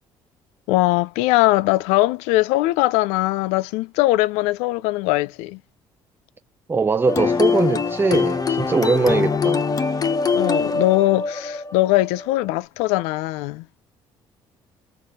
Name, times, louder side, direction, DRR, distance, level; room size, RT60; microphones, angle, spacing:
voice 1, 0.7-5.6 10.3-13.7, left 18 dB, 90° left, 0.4 m, -20 dB
voice 2, 6.7-9.7, right 4 dB, 20° right, 0.4 m, -21 dB
sound 1, 7.1-12.6, left 5 dB, 35° left, 0.9 m, -23 dB
3.4 x 2.5 x 3.7 m
supercardioid pair, 75°, 11 cm